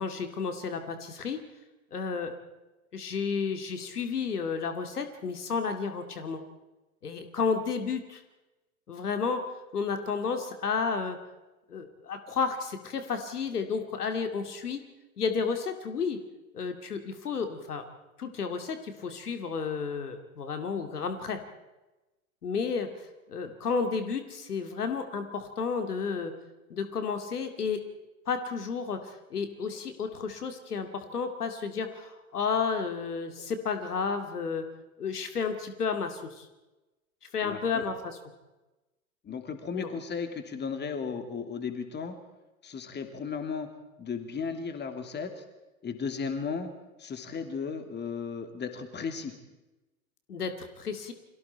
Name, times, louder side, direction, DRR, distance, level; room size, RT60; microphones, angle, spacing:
voice 1, 0.0-1.4 1.9-2.4 2.9-6.4 7.0-8.2 8.9-11.2 11.7-14.9 15.2-16.2 16.5-17.8 18.2-21.4 22.4-26.3 26.7-27.8 28.3-34.7 35.0-36.5 37.3-38.2 39.7-39.9 50.3-51.1, left 5 dB, 85° left, 7 dB, 2.5 m, -32 dB
voice 2, 37.4-37.8 39.2-42.2 42.6-43.7 44.0-45.4 45.8-46.7 47.0-49.3, left 5 dB, 25° left, 7 dB, 2.9 m, -35 dB
30.0 x 22.5 x 4.5 m, 1.1 s
hypercardioid pair, 100°, 45 cm